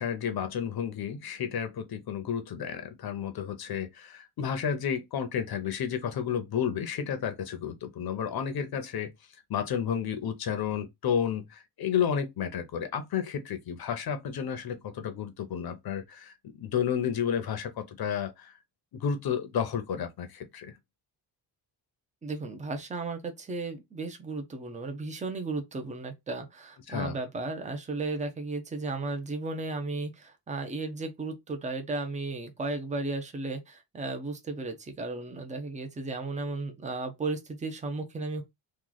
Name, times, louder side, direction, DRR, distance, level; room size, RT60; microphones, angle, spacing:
voice 1, 0.0-9.1 9.5-18.5 18.9-20.7 26.9-27.1, left 8 dB, 55° left, 0.7 m, -31 dB
voice 2, 22.2-38.4, right 3 dB, 15° right, 0.6 m, -35 dB
3.1 x 2.3 x 3.8 m
wide cardioid pair, 170°, 44 cm